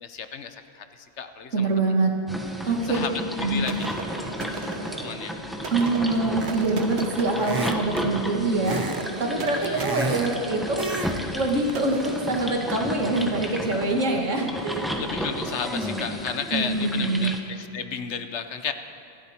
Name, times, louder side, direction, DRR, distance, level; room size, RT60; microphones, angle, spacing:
voice 1, 0.0-1.9 2.6-3.1 3.5-3.7 5.0-5.3 9.4-9.9 15.0-18.7, left 7 dB, 70° left, 9 dB, 1.1 m, -33 dB
voice 2, 1.5-2.1 2.6-3.1 3.4-3.7 5.7-10.9 11.3-14.9 16.5-17.3, right 2 dB, 80° right, 1 dB, 2.2 m, -25 dB
sound 1, 2.3-17.4, equal, ahead, 1.2 m, -33 dB
sound 2, 3.7-13.3, right 4 dB, 65° right, 1.3 m, -38 dB
sound 3, 6.4-6.8 7.4-8.0 8.6-9.1 9.4-10.4 10.8-11.2 11.5-11.7, right 3 dB, 30° right, 0.4 m, -31 dB
27.0 x 12.5 x 4.4 m, 2.5 s
omnidirectional pair, 1.3 m